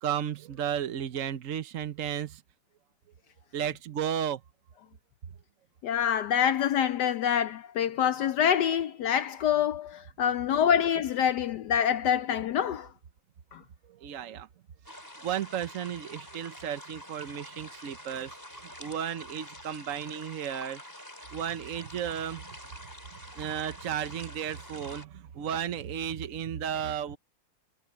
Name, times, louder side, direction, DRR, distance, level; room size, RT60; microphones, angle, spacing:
voice 1, 0.0-2.4 3.5-4.4 13.9-14.5 15.2-18.4 18.8-20.8 21.3-22.4 23.4-27.2, right 9 dB, 60° right, 0.8 m, -33 dB
voice 2, 5.8-12.9 13.5-13.6, left 9 dB, 80° left, 0.9 m, -26 dB
sound 1, 14.8-25.0, equal, 10° left, 5.4 m, -47 dB
omnidirectional pair, 2.4 m